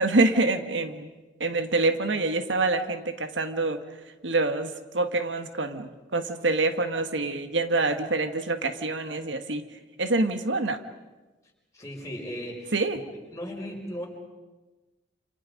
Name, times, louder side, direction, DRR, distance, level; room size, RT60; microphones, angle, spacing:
voice 1, 0.0-3.8 4.2-9.6 10.0-10.8 12.7-13.0, right 2 dB, 90° right, 8 dB, 1.6 m, -26 dB
voice 2, 11.7-12.7 13.3-14.1, equal, 20° left, -2 dB, 5.9 m, -36 dB
28.5 x 27.5 x 5.3 m, 1.2 s
head